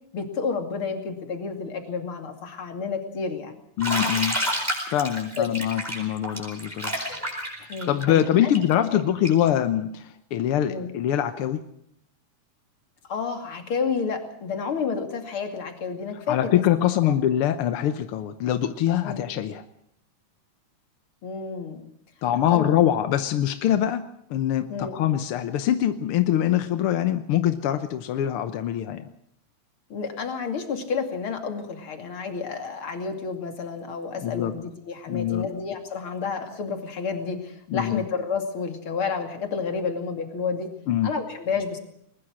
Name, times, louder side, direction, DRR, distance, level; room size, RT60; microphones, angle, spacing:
voice 1, 0.1-3.6 5.4-5.5 7.7-8.5 8.9-9.0 10.7-10.9 13.1-16.6 17.1-17.2 19.0-19.2 21.2-21.8 22.4-22.8 24.7-24.9 29.9-40.7 41.0-41.8, left 5 dB, 45° left, 5 dB, 3.2 m, -30 dB
voice 2, 3.8-4.4 4.9-6.9 7.9-11.6 16.3-19.6 22.2-24.0 24.3-29.1 34.2-34.5 35.1-35.4 37.7-38.0 40.9-41.1, left 11 dB, 65° left, 10 dB, 1.4 m, -24 dB
Bathtub (filling or washing), 3.8-9.5, equal, 5° right, 7.5 m, -29 dB
21.0 x 20.5 x 6.3 m, 0.73 s
omnidirectional pair, 3.4 m